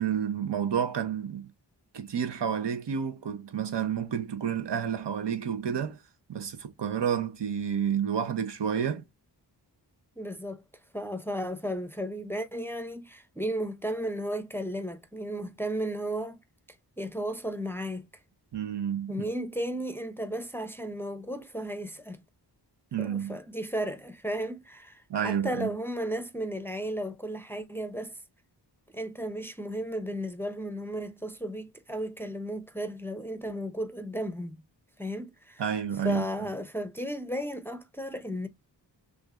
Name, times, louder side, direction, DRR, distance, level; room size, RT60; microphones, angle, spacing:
voice 1, 0.0-1.5 1.9-6.0 6.3-9.0 18.5-19.1 22.9-23.4 25.1-25.7 35.6-36.2, right 8 dB, 75° right, 1.0 m, -30 dB
voice 2, 10.2-10.6 10.9-16.4 17.0-18.1 19.1-22.2 23.0-28.2 28.9-34.6 35.0-35.6 36.0-38.5, equal, 5° left, 0.6 m, -34 dB
5.8 x 2.6 x 2.5 m
wide cardioid pair, 90°, 42 cm